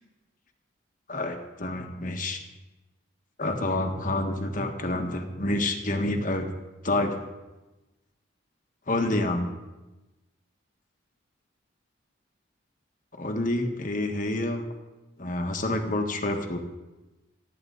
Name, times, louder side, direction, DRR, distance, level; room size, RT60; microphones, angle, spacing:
voice 1, 1.1-2.4 3.4-6.5 6.8-7.2 8.9-9.5 13.2-14.6 15.2-16.6, left 2 dB, 40° left, 4 dB, 1.6 m, -28 dB
28.0 x 10.0 x 4.0 m, 1.1 s
head